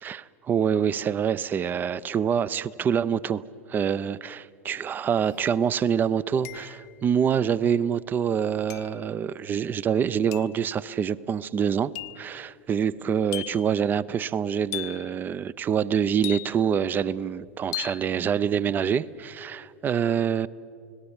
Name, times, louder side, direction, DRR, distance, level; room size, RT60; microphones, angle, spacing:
voice 1, 0.0-3.4 3.7-20.5, right 7 dB, 25° right, 21 dB, 0.6 m, -26 dB
sound 1, 5.3-5.4 6.4-7.0 8.7-9.0 10.3-10.6 11.9-12.3 13.3-13.7 14.7-15.1 16.2-16.8 17.7-18.1, left 23 dB, 50° left, 0.6 m, -37 dB
30.0 x 18.5 x 7.1 m, 2.6 s
figure-of-eight pair, 90°, 7 cm